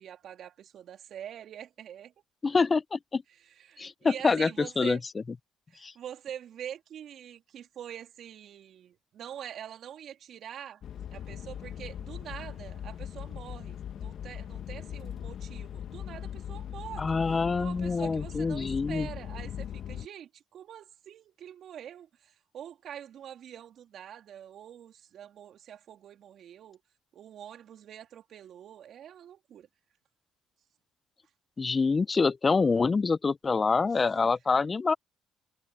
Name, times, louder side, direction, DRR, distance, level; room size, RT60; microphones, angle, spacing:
voice 1, 0.0-2.1 3.6-5.0 5.7-10.8 11.1-17.2 17.5-26.8 27.1-29.7 34.1-34.3, right 10 dB, 60° right, 3.5 m, -45 dB
voice 2, 2.4-3.2 3.8-5.0 5.8-5.9 17.0-19.1 31.6-34.9, left 4 dB, 30° left, 0.7 m, -26 dB
sound 1, 10.8-20.1, left 9 dB, 60° left, 1.8 m, -39 dB
supercardioid pair, 65°, 0 cm